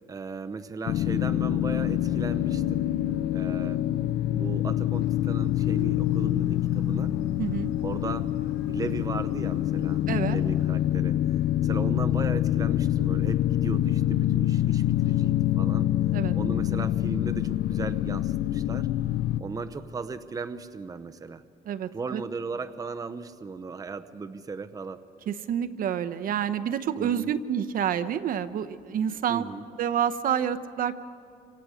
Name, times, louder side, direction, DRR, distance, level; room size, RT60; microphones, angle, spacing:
voice 1, 0.1-2.8 3.3-3.9 4.3-7.2 7.8-8.3 8.7-10.0 10.3-15.9 16.3-18.9 19.4-21.4 21.9-25.0 27.0-27.3 29.3-29.6, right 4 dB, 20° right, 10 dB, 0.8 m, -37 dB
sound 1, 0.9-19.4, left 12 dB, 70° left, 0.6 m, -26 dB
sound 2, 4.9-10.7, left 5 dB, 90° left, 6.2 m, -46 dB
voice 2, 7.4-7.7 10.1-10.4 16.1-16.3 21.6-22.2 25.3-29.4 29.8-31.0, right 9 dB, 55° right, 10 dB, 0.9 m, -28 dB
27.5 x 26.5 x 5.1 m, 2.4 s
cardioid pair, 110°, 17 cm